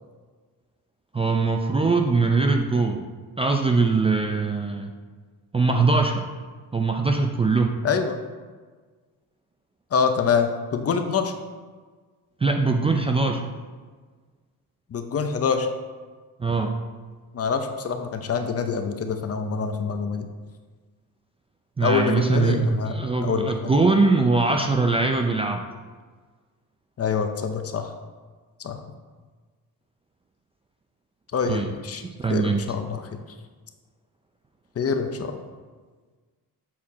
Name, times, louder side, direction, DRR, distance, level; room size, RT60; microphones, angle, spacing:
voice 1, 1.1-3.1 3.4-4.9 5.5-6.2 6.7-7.7 12.4-13.5 16.4-16.7 21.8-22.7 22.9-25.6 31.5-31.7 32.2-32.6, right 3 dB, 15° right, 3 dB, 0.4 m, -22 dB
voice 2, 7.8-8.2 9.9-11.3 14.9-15.7 17.3-20.3 21.8-23.7 27.0-27.9 28.6-28.8 31.3-32.0 32.3-33.2 34.8-35.4, left 6 dB, 40° left, 6 dB, 0.7 m, -25 dB
7.5 x 4.4 x 4.1 m, 1.4 s
cardioid pair, 115°, 35 cm